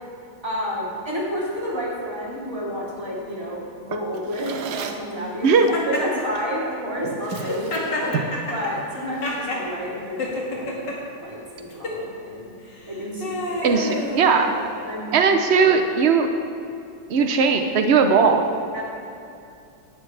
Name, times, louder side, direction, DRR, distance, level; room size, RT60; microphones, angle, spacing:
voice 1, 0.4-8.1 8.5-10.9 11.2-12.5 12.9-13.8 14.8-15.1 15.6-15.8 17.1-17.3 18.7-18.8, equal, 15° right, -6 dB, 3.1 m, -30 dB
Drawer open or close, 3.9-5.2 6.3-6.6 7.0-8.5, right 7 dB, 65° right, 1.2 m, -33 dB
Laughter, 5.7-6.5 7.3-9.6 10.2-11.0 11.7-12.0 12.7-14.9, left 2 dB, 65° left, 2.5 m, -29 dB
voice 2, 13.6-14.6 15.1-16.3 17.1-18.5, right 5 dB, 85° right, 6 dB, 0.5 m, -18 dB
18.0 x 11.0 x 3.3 m, 2.6 s
omnidirectional pair, 2.1 m